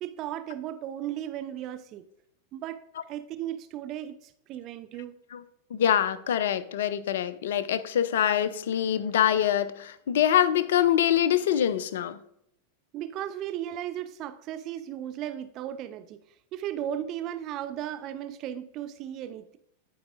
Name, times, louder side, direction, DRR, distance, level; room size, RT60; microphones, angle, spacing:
voice 1, 0.0-2.0 2.5-2.8 3.1-5.2 12.9-16.2 16.5-19.6, right 11 dB, 35° right, 0.4 m, -35 dB
voice 2, 5.7-12.2, left 10 dB, 60° left, 0.4 m, -24 dB
12.0 x 4.7 x 2.5 m
figure-of-eight pair, 90°, 0 cm